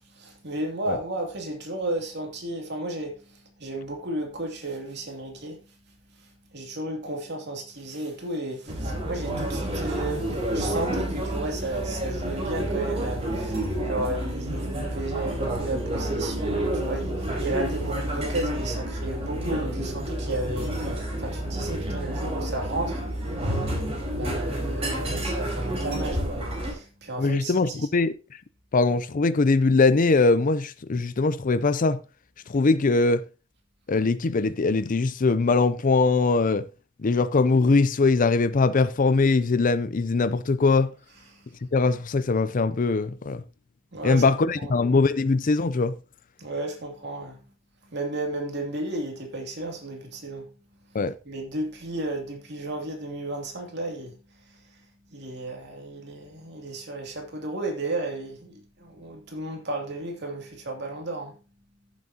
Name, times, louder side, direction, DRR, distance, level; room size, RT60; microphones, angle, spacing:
voice 1, 0.1-5.6 6.1-23.1 23.9-27.9 41.3-41.5 43.9-44.2 44.6-44.7 46.4-47.4 47.8-50.5 51.2-61.4, right 2 dB, 55° right, 2.7 m, -33 dB
sound 1, 8.7-26.7, right 1 dB, 30° right, 4.3 m, -29 dB
voice 2, 27.2-28.1 28.7-32.0 32.5-33.3 33.9-36.7 37.0-40.9 41.7-43.4 44.0-46.0 50.9-51.1, left 3 dB, 40° left, 0.5 m, -21 dB
15.0 x 7.4 x 2.8 m
head